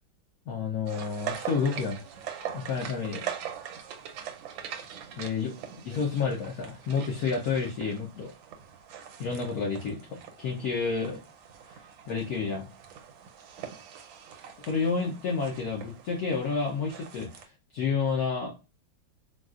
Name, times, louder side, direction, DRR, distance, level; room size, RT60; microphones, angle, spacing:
voice 1, 0.5-2.0 2.5-3.2 5.2-5.5 5.8-8.3 9.2-11.2 11.7-11.8 12.1-12.7 14.6-17.5 17.7-18.5, left 5 dB, 65° left, 0 dB, 1.0 m, -30 dB
sound 1, 0.9-17.4, right 9 dB, 85° right, 1.4 m, -42 dB
4.0 x 2.3 x 2.3 m, 0.29 s
omnidirectional pair, 2.1 m